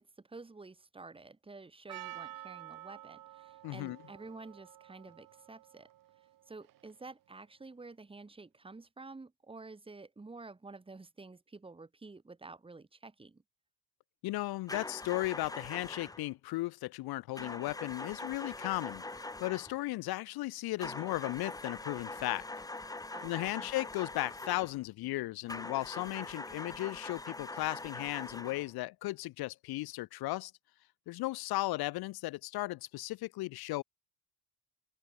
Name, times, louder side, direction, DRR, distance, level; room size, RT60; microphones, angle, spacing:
voice 1, 0.0-5.9 6.5-13.4 23.1-23.7, right 3 dB, 15° right, 4.8 m, -50 dB
Percussion, 1.9-7.1, right 14 dB, 55° right, 2.6 m, -50 dB
voice 2, 3.6-4.0 14.2-22.5 23.2-30.5 31.1-33.8, left 19 dB, 70° left, 1.2 m, -36 dB
sound 1, 14.7-16.3 17.4-19.8 20.8-24.8 25.5-28.7, left 2 dB, 10° left, 1.6 m, -43 dB
open air
cardioid pair, 135°, 39 cm